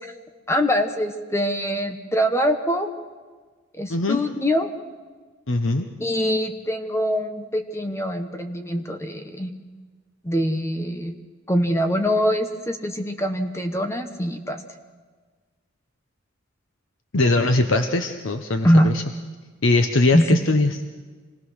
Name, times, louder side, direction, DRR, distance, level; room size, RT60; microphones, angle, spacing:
voice 1, 0.5-2.9 3.8-4.7 6.0-9.5 10.2-11.2 11.5-14.6 18.6-18.9 20.1-20.4, equal, 15° left, 6 dB, 1.1 m, -23 dB
voice 2, 3.9-4.2 5.5-5.9 17.1-19.0 19.6-20.8, left 2 dB, 90° left, 6 dB, 1.0 m, -21 dB
26.5 x 18.0 x 6.4 m, 1.4 s
head